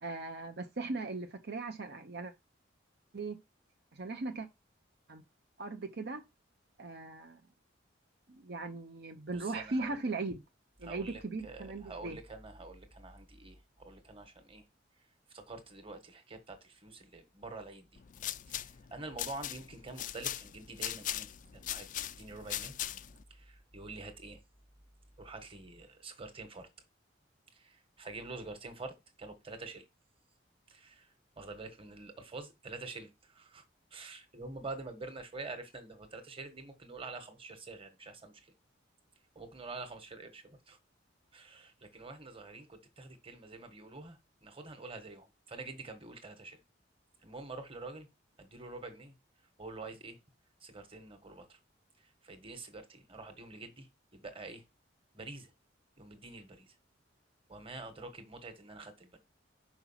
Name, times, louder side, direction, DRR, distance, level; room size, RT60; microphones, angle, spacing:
voice 1, 0.0-2.3 3.1-3.4 3.9-4.5 5.1-5.2 5.6-6.2 6.8-7.4 8.3-10.4 10.8-12.2, right 3 dB, 55° right, 0.8 m, -38 dB
voice 2, 9.3-10.0 10.8-14.6 15.3-18.0 18.5-21.3 21.5-22.7 23.3-24.4 25.2-26.7 27.5-29.8 30.7-31.1 31.4-33.6 33.9-38.5 39.3-40.8 41.3-46.6 47.2-48.1 48.4-49.2 49.6-50.2 50.6-51.6 52.0-54.6 55.1-55.5 56.0-56.7 57.5-59.2, right 3 dB, 30° right, 1.5 m, -47 dB
sound 1, 18.0-23.2, left 12 dB, 45° left, 0.4 m, -40 dB
5.9 x 5.5 x 5.7 m
head